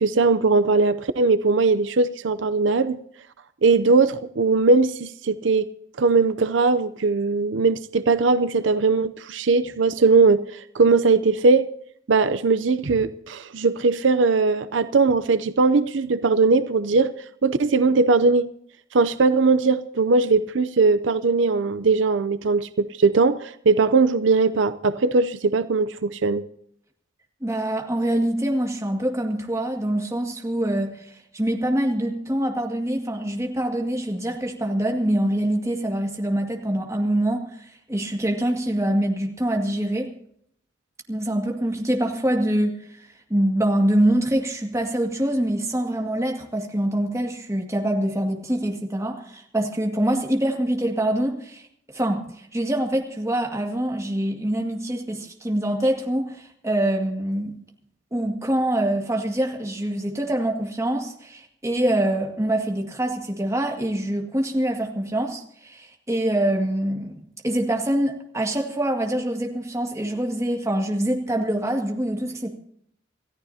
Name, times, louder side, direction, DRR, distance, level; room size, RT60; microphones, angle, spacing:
voice 1, 0.0-3.0 3.6-5.6 6.0-11.7 12.1-17.1 17.4-18.5 18.9-26.4, right 4 dB, 80° right, 13 dB, 0.6 m, -20 dB
voice 2, 27.4-40.1 41.1-51.6 51.9-57.5 58.1-72.5, right 1 dB, 15° right, 2 dB, 2.0 m, -25 dB
28.0 x 14.0 x 2.8 m, 0.68 s
head